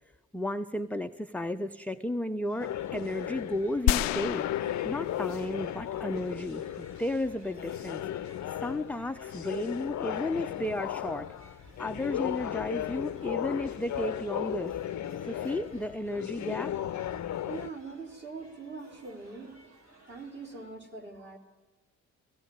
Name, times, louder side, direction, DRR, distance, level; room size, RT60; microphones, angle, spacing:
voice 1, 0.3-8.0 8.6-11.3 11.8-14.7 15.2-16.8, left 1 dB, 5° left, 8 dB, 0.8 m, -33 dB
sound 1, 2.5-20.7, right 1 dB, 45° right, 6.0 m, -58 dB
sound 2, 2.6-17.7, left 11 dB, 45° left, 0.8 m, -36 dB
sound 3, 3.9-6.2, left 14 dB, 80° left, 0.5 m, -31 dB
voice 2, 17.4-21.4, right 4 dB, 25° right, 0 dB, 4.9 m, -43 dB
17.5 x 17.0 x 9.0 m, 1.3 s
hypercardioid pair, 45°, 39 cm